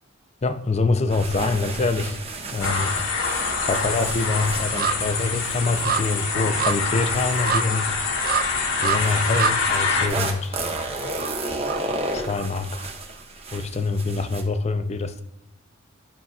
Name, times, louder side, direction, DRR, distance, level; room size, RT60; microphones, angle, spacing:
voice 1, 0.4-2.2 2.5-3.0 3.6-8.0 8.8-10.6 12.1-12.9 13.5-15.2, left 3 dB, 30° left, 0.5 m, -25 dB
sound 1, 1.1-8.1 8.8-14.4, right 2 dB, 30° right, 0.9 m, -33 dB
sound 2, 2.1-2.6 2.9-12.8 13.2-13.3, right 7 dB, 45° right, 0.4 m, -30 dB
sound 3, 2.6-10.1, left 4 dB, 70° left, 1.3 m, -25 dB
12.0 x 5.5 x 2.4 m
head